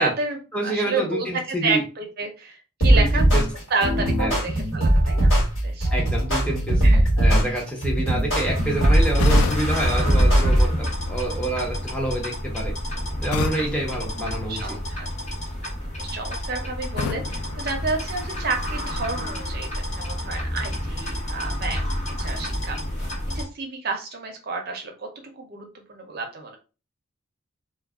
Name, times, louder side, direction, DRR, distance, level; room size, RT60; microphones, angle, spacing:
voice 1, 0.0-3.2 3.7-5.4 5.6-5.9 6.8-7.1 14.5-15.1 15.6-15.7 16.0-21.8 22.2-22.8 23.3-24.9 25.3-26.6, right 4 dB, 45° right, 3 dB, 0.5 m, -30 dB
voice 2, 0.5-1.8 2.9-3.4 4.2-4.4 5.9-6.8 7.2-12.7 13.2-14.8, right 1 dB, 5° left, -2 dB, 0.6 m, -27 dB
sound 1, 2.8-10.8, right 1 dB, 65° left, 1.4 m, -19 dB
sound 2, 8.3-23.4, left 1 dB, 35° left, 0.8 m, -29 dB
sound 3, 9.2-11.1 13.3-15.0 17.0-18.6, left 5 dB, 80° left, 0.3 m, -32 dB
2.3 x 2.1 x 3.4 m, 0.33 s
head